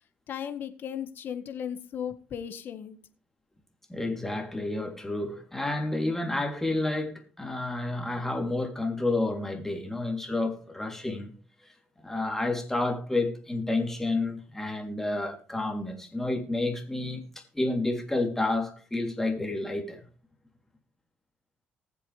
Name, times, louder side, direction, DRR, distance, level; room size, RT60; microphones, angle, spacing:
voice 1, 0.3-3.0, left 8 dB, 60° left, 1.7 m, -36 dB
voice 2, 3.9-11.3 12.0-20.0, left 2 dB, 10° left, 3.3 m, -30 dB
20.0 x 7.4 x 3.4 m
cardioid pair, 90°, 4 cm